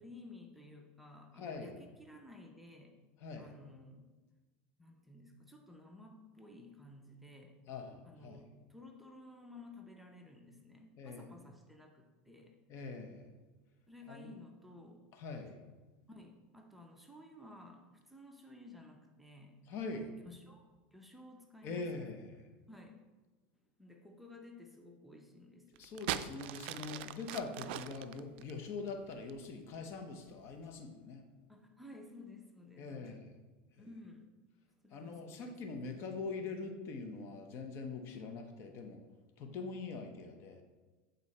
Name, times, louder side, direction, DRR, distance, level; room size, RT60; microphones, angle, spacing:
voice 1, 0.0-2.9 3.4-4.1 4.8-7.6 8.0-12.6 13.9-15.0 16.1-19.6 19.9-21.9 22.7-23.0 23.8-25.8 31.5-33.2 33.8-34.3 34.8-35.5 38.2-38.3, left 2 dB, ahead, 1 dB, 0.8 m, -54 dB
voice 2, 1.4-1.8 3.2-3.5 7.7-8.5 11.0-11.3 12.7-13.2 14.1-14.3 15.1-15.6 19.7-20.1 21.6-22.5 25.8-31.2 32.8-33.3 33.8-33.9 34.9-39.0 39.4-40.6, left 4 dB, 45° left, 5 dB, 0.9 m, -43 dB
sound 1, 25.8-29.4 30.3-30.6, right 12 dB, 70° right, 0.3 m, -41 dB
8.3 x 4.0 x 4.2 m, 1.3 s
supercardioid pair, 120°, 6 cm